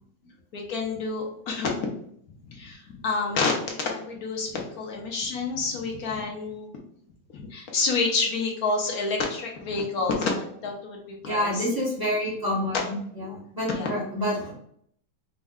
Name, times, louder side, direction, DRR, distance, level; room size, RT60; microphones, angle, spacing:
voice 1, 0.5-1.9 2.5-6.7 7.3-11.6 13.7-14.0, left 4 dB, 60° left, 0 dB, 1.1 m, -28 dB
voice 2, 11.2-14.5, left 1 dB, 15° right, -6 dB, 1.0 m, -28 dB
5.2 x 2.2 x 3.6 m, 0.66 s
omnidirectional pair, 2.2 m